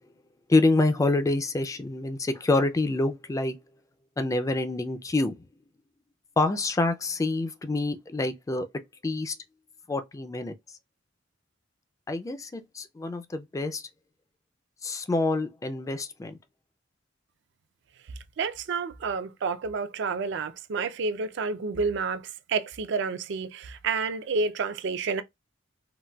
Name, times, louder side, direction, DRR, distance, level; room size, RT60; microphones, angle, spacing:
voice 1, 0.5-3.6 4.2-5.4 6.4-8.7 9.0-9.4 9.9-10.5 12.1-13.9 14.8-16.4, left 2 dB, 15° left, 0.3 m, -26 dB
voice 2, 18.4-25.2, right 4 dB, 65° right, 0.4 m, -29 dB
3.9 x 2.1 x 2.2 m
head